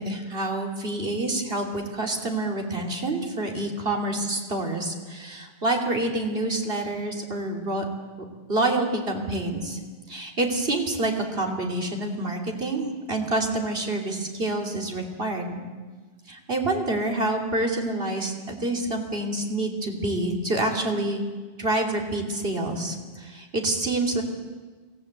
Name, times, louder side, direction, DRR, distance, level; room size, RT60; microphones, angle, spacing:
voice 1, 0.0-7.8 8.5-9.8 10.1-15.6 16.3-21.2 21.6-24.2, right 2 dB, 65° right, 1 dB, 3.2 m, -27 dB
25.0 x 16.5 x 8.1 m, 1.4 s
omnidirectional pair, 1.0 m